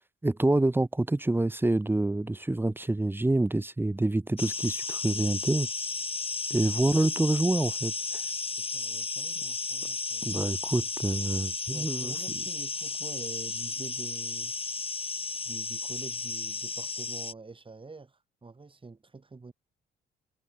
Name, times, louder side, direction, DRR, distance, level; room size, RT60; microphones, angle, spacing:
voice 1, 0.2-5.7 6.5-7.9 10.2-12.4, right 2 dB, 10° right, 0.8 m, -27 dB
sound 1, 4.4-17.3, left 4 dB, 30° left, 4.5 m, -34 dB
voice 2, 8.5-10.4 11.7-14.5 15.4-19.5, right 3 dB, 25° right, 6.6 m, -46 dB
cardioid pair, 90°, 20 cm